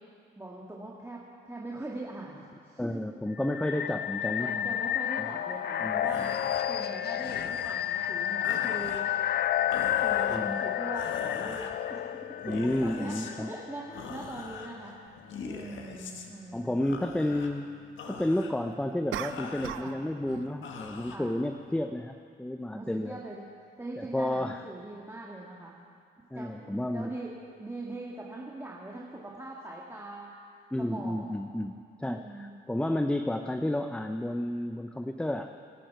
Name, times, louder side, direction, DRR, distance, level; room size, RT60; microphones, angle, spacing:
voice 1, 0.4-3.0 3.7-3.9 4.4-9.1 9.5-9.6 10.0-15.0 15.4-16.8 19.8-20.0 21.1-21.3 22.7-23.4 23.8-25.8 26.3-30.4 30.8-31.3 32.0-32.6, right 2 dB, 10° right, -4 dB, 1.8 m, -42 dB
voice 2, 2.8-4.8 5.2-5.3 5.8-6.3 10.3-10.6 12.4-13.5 15.6-15.7 16.5-17.7 18.1-23.2 24.0-24.6 26.3-27.1 30.7-35.5, left 1 dB, 5° left, 7 dB, 0.6 m, -31 dB
sound 1, 3.4-14.2, left 11 dB, 55° left, 0.5 m, -31 dB
sound 2, 6.0-21.9, left 5 dB, 75° left, 1.6 m, -44 dB
sound 3, 15.1-15.2 19.1-20.0 20.3-20.6, right 12 dB, 80° right, 0.6 m, -38 dB
25.5 x 10.0 x 4.7 m, 2.2 s
cardioid pair, 90°, 20 cm